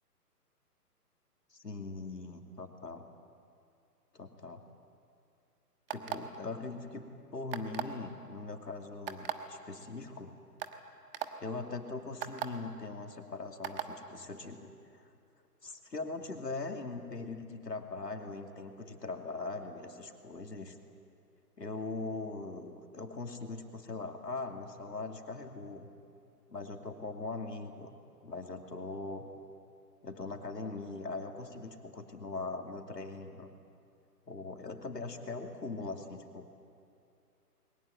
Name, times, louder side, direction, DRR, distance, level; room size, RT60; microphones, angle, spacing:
voice 1, 1.5-3.0 4.1-4.6 5.9-10.4 11.4-15.1 15.6-20.8 21.6-25.9 26.5-28.0 28.2-29.3 30.0-33.5 34.3-36.5, left 3 dB, 80° left, 4 dB, 2.8 m, -41 dB
sound 1, 5.9-6.4 7.5-8.0 9.1-9.3 10.1-10.2 10.6-10.7 11.1-11.3 12.2-12.5 13.6-13.9, right 10 dB, 35° right, 1.4 m, -36 dB
22.0 x 19.0 x 9.6 m, 2.5 s
figure-of-eight pair, 140°, 48 cm